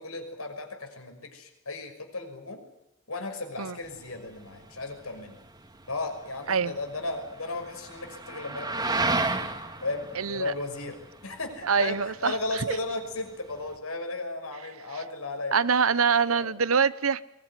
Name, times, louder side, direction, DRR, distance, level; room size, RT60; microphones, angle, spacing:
voice 1, 0.0-2.6 3.1-5.4 5.9-9.2 9.8-11.0 11.2-15.5 16.3-16.5, left 2 dB, 85° left, 6.0 m, -35 dB
sound 1, 3.8-13.8, right 3 dB, 20° right, 2.1 m, -34 dB
voice 2, 10.2-10.5 11.6-12.8 15.5-17.2, right 6 dB, 80° right, 1.0 m, -25 dB
23.0 x 20.5 x 9.9 m
head